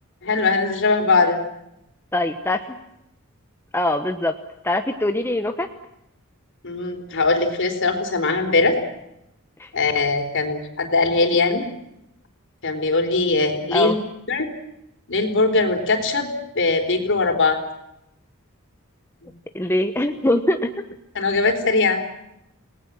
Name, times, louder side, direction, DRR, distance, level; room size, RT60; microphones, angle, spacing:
voice 1, 0.2-1.4 6.6-8.8 9.7-11.6 12.6-14.0 14.3-14.5 15.1-16.3 16.6-17.6 19.2-19.3 21.2-22.0, left 3 dB, 60° left, 6 dB, 4.0 m, -20 dB
voice 2, 2.1-2.6 3.7-4.3 4.6-5.7 9.6-9.7 11.3-11.6 13.7-14.0 19.5-20.8, left 1 dB, 10° left, 6 dB, 1.1 m, -22 dB
29.5 x 19.0 x 7.6 m, 0.82 s
head